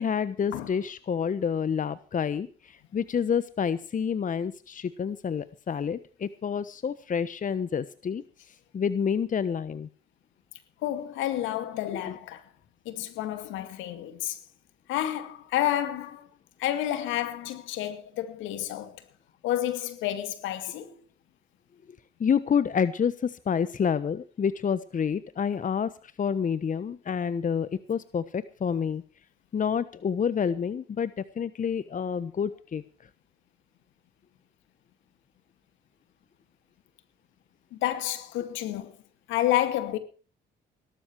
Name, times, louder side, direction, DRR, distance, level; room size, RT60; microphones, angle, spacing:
voice 1, 0.0-8.2 8.7-9.9 11.9-12.2 22.2-25.9 26.2-29.0 29.5-31.1 31.4-32.8, left 7 dB, 45° left, 1.1 m, -28 dB
voice 2, 10.8-12.4 12.9-14.4 14.9-16.3 16.6-19.0 19.4-21.0 37.7-38.9 39.3-40.0, left 12 dB, 80° left, 2.3 m, -30 dB
18.5 x 12.5 x 4.6 m
supercardioid pair, 60°, 20 cm